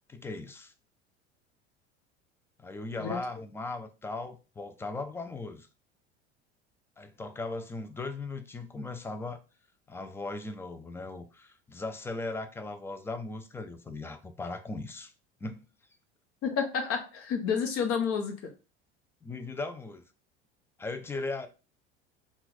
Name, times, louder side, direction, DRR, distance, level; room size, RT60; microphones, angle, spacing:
voice 1, 0.1-0.7 2.6-5.7 7.0-9.4 9.9-15.1 15.4-15.6 19.2-20.0 20.8-21.5, left 3 dB, 5° left, 0.4 m, -38 dB
voice 2, 16.4-18.5, left 6 dB, 40° left, 1.0 m, -30 dB
3.8 x 2.4 x 4.1 m
figure-of-eight pair, 70°, 34 cm